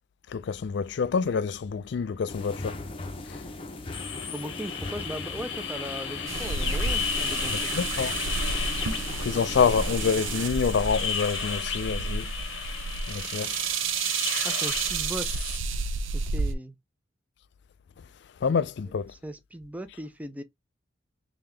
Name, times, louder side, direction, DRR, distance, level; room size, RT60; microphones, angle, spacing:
voice 1, 0.3-2.8 7.8-8.1 9.2-12.3 13.1-13.5 18.4-19.1, left 6 dB, 60° left, 0.4 m, -26 dB
sound 1, 2.3-10.5, left 2 dB, 30° left, 0.7 m, -39 dB
sound 2, 3.9-15.6, left 7 dB, 85° left, 1.0 m, -34 dB
voice 2, 4.3-7.7 14.4-15.4 16.1-16.8 18.9-20.4, right 1 dB, 10° right, 0.5 m, -38 dB
sound 3, 6.3-16.5, right 4 dB, 90° right, 0.6 m, -31 dB
3.6 x 2.8 x 3.3 m
head